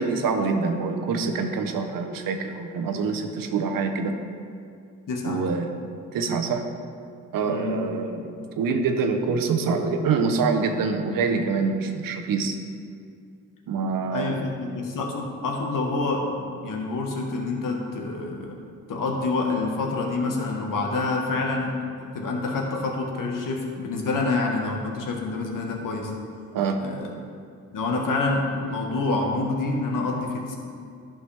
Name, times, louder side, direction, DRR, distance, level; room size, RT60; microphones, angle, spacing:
voice 1, 0.0-4.1 5.2-5.7 6.1-6.7 7.3-12.6 13.7-14.5 26.5-26.8, right 4 dB, 85° right, 5 dB, 0.8 m, -25 dB
voice 2, 5.1-5.5 7.4-7.9 14.1-18.6 18.9-26.1 26.8-27.1 27.7-30.6, left 3 dB, 75° left, 0 dB, 1.4 m, -27 dB
11.0 x 5.8 x 3.3 m, 2.4 s
cardioid pair, 60°, 33 cm